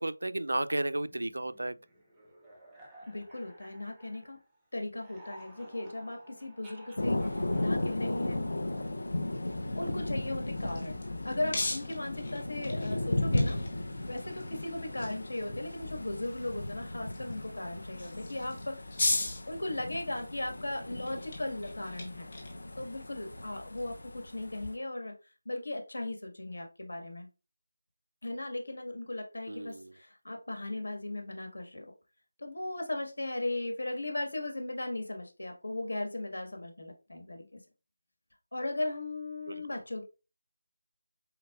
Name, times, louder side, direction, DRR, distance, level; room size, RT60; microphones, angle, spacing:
voice 1, 0.0-1.7 29.5-29.9 39.5-39.6, right 2 dB, 90° right, 0.3 m, -33 dB
sound 1, 1.1-4.6 4.8-8.9, right 1 dB, 5° right, 0.4 m, -55 dB
voice 2, 3.1-4.4 4.7-8.4 9.7-13.6 14.1-18.9 19.5-22.4 22.8-25.1 25.4-27.3 28.2-31.9 32.4-37.6 38.5-40.0, left 2 dB, 80° left, 1.4 m, -37 dB
Thunder, 7.0-24.8, left 1 dB, 60° left, 0.6 m, -36 dB
sound 2, 10.2-24.7, left 2 dB, 20° left, 0.8 m, -40 dB
4.1 x 3.8 x 2.3 m
figure-of-eight pair, 180°, 0 cm